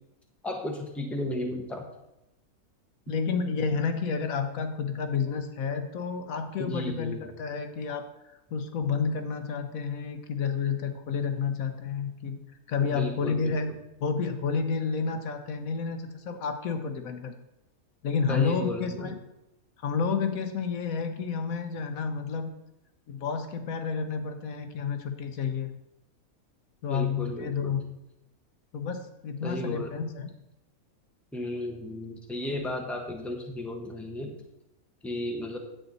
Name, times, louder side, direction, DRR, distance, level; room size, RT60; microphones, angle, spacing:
voice 1, 0.4-1.8 6.6-7.3 12.8-13.5 18.3-19.2 26.9-27.8 29.4-29.9 31.3-34.3 35.0-35.6, left 1 dB, ahead, 2 dB, 1.0 m, -34 dB
voice 2, 3.1-8.1 8.5-12.4 12.7-13.7 14.0-17.3 18.0-19.1 19.8-22.5 23.1-25.7 26.8-27.8 28.7-30.3, left 5 dB, 70° left, 8 dB, 1.2 m, -30 dB
9.8 x 8.1 x 4.0 m, 0.89 s
omnidirectional pair, 1.5 m